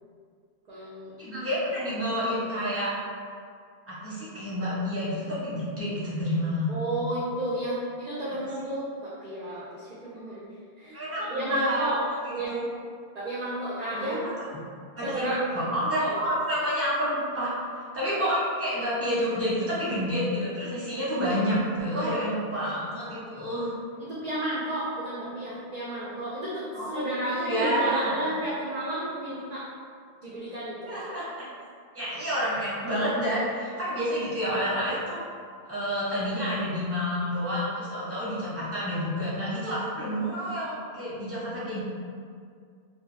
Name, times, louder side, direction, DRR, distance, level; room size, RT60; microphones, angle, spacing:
voice 1, 0.7-1.2 6.7-10.5 10.8-12.0 12.3-12.5 13.1-14.2 15.0-15.4 16.0-16.2 22.0-22.3 24.0-29.6 30.2-31.0, right 1 dB, 55° right, -7 dB, 0.5 m, -32 dB
voice 2, 1.2-2.9 3.9-6.7 10.9-12.6 13.9-14.2 14.9-17.5 17.9-23.7 26.7-28.2 30.8-31.3 31.9-35.2 35.6-41.8, equal, 15° right, -9 dB, 0.7 m, -29 dB
2.5 x 2.2 x 3.2 m, 2.1 s
omnidirectional pair, 1.1 m